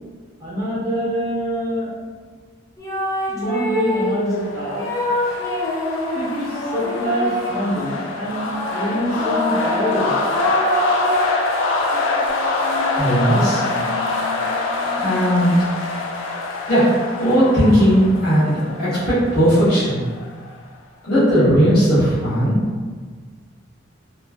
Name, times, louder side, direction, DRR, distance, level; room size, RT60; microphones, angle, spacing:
voice 1, 0.4-1.9 3.3-4.9 6.1-10.1, equal, 20° right, -10 dB, 1.0 m, -25 dB
sound 1, 2.8-4.2 4.8-7.7 8.5-11.4 11.9-15.6, equal, 20° left, 0.4 m, -26 dB
sound 2, 3.9-20.6, left 3 dB, 85° left, 0.4 m, -25 dB
voice 2, 13.0-13.6 15.0-15.7 16.7-16.9 17.2-20.0 21.0-22.6, equal, 50° left, -14 dB, 1.1 m, -17 dB
3.0 x 2.4 x 2.4 m, 1.5 s
head